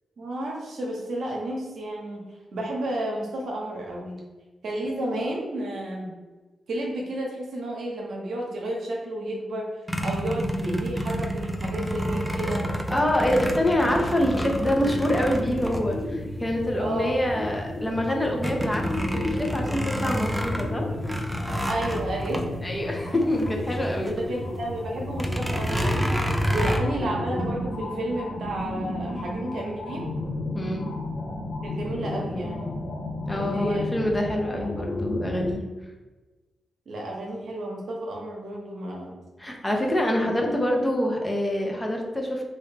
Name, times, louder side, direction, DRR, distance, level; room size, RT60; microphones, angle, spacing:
voice 1, 0.2-2.2 2.5-4.2 4.6-6.1 6.7-9.7 10.0-12.7 16.8-17.2 21.6-22.4 24.1-26.1 26.5-30.1 31.6-32.8 33.3-33.9 36.9-39.2 40.2-40.3, right 1 dB, 75° right, -1 dB, 0.8 m, -31 dB
sound 1, 9.9-16.5 17.1-17.2 17.6-24.2 24.5-24.6 25.1-26.8, equal, 5° right, 0.5 m, -29 dB
voice 2, 12.9-18.8 19.1-20.8 22.6-24.1 26.5-26.7 30.5-30.9 33.3-35.6 39.4-42.4, left 1 dB, 20° left, 0 dB, 0.8 m, -26 dB
sound 2, 15.6-35.5, left 1 dB, 80° left, 0.8 m, -33 dB
3.1 x 2.6 x 3.3 m, 1.2 s
supercardioid pair, 50°, 0 cm